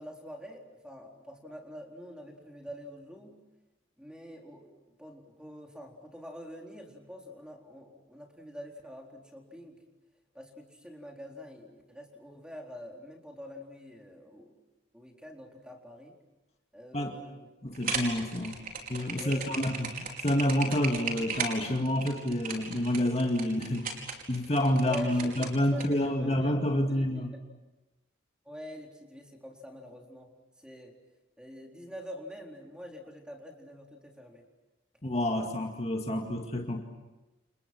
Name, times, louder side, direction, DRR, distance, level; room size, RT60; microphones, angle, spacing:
voice 1, 0.0-3.4 4.0-9.8 10.3-14.5 14.9-16.2 16.7-17.5 19.1-19.5 24.9-26.5 26.9-27.3 28.5-30.3 30.6-30.9 31.4-34.4, equal, 5° right, 1 dB, 4.1 m, -46 dB
voice 2, 17.6-18.6 18.9-27.3 35.0-36.8, left 1 dB, 35° left, 2 dB, 2.2 m, -29 dB
sound 1, 17.7-25.9, right 4 dB, 50° right, 5.0 m, -36 dB
30.0 x 29.5 x 6.2 m, 1.1 s
head